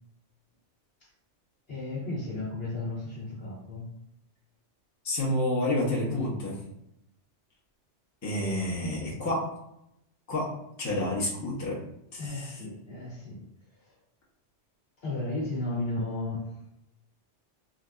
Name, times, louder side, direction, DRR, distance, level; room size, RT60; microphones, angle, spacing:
voice 1, 1.7-3.9 12.2-13.4 13.7-13.9 15.0-16.5, left 2 dB, 55° left, -7 dB, 1.2 m, -34 dB
voice 2, 5.0-6.6 8.2-9.5 10.3-10.5 10.8-11.8 12.1-12.5, left 1 dB, 15° left, -5 dB, 0.7 m, -29 dB
3.8 x 2.6 x 2.3 m, 0.81 s
omnidirectional pair, 1.2 m